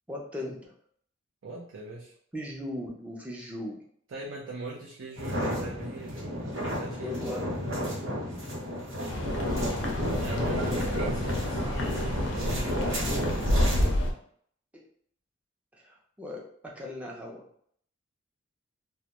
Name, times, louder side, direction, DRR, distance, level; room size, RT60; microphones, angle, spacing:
voice 1, 0.1-0.7 2.3-3.8 6.8-7.4 8.1-8.4 14.7-14.8 15.8-17.4, left 1 dB, 5° right, -2 dB, 0.4 m, -38 dB
voice 2, 1.4-2.1 4.1-7.1 7.5-7.8 10.1-13.3, right 2 dB, 70° right, -4 dB, 0.4 m, -41 dB
sound 1, 5.2-13.9, equal, 85° right, 1.0 m, -32 dB
sound 2, 9.1-14.1, left 1 dB, 70° left, 0.4 m, -29 dB
2.1 x 2.1 x 2.8 m, 0.62 s
head